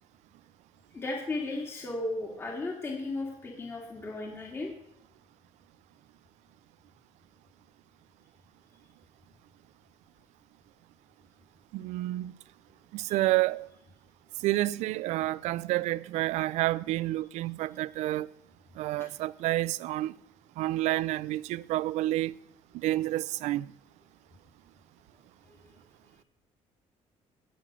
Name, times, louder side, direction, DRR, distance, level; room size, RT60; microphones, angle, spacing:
voice 1, 0.9-4.7 13.1-13.2, left 2 dB, 20° left, 2.0 m, -35 dB
voice 2, 11.7-12.3 12.9-13.7 14.4-18.3 18.8-20.1 20.6-22.3 22.7-23.7, right 16 dB, 75° right, 0.4 m, -29 dB
16.5 x 6.0 x 6.1 m
cardioid pair, 160°, 12 cm